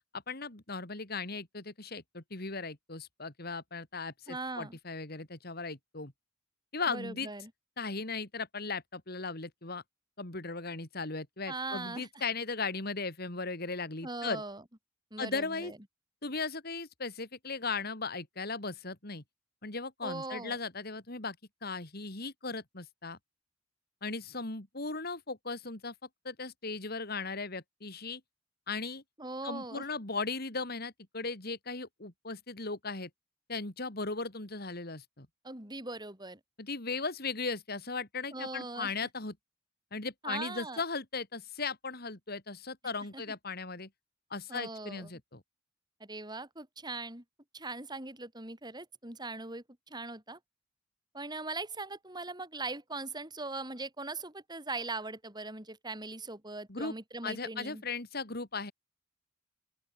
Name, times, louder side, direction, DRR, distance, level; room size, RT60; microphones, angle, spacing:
voice 1, 0.1-6.1 6.7-7.3 7.8-9.8 10.2-14.4 15.2-15.7 16.2-19.2 19.6-21.4 21.6-23.2 24.0-25.9 26.2-28.2 28.7-29.0 29.4-33.1 33.5-35.3 36.6-39.4 39.9-43.9 44.3-45.4 56.7-57.0 57.2-58.7, left 4 dB, 50° left, 3.0 m, -37 dB
voice 2, 4.3-4.8 6.9-7.5 11.5-12.1 14.0-14.6 15.1-15.8 20.0-20.6 29.2-29.9 35.4-36.4 38.3-38.9 40.2-40.8 43.1-43.2 44.5-45.1 46.0-47.2 47.5-50.4 51.1-57.8, right 3 dB, 20° right, 5.1 m, -40 dB
open air
head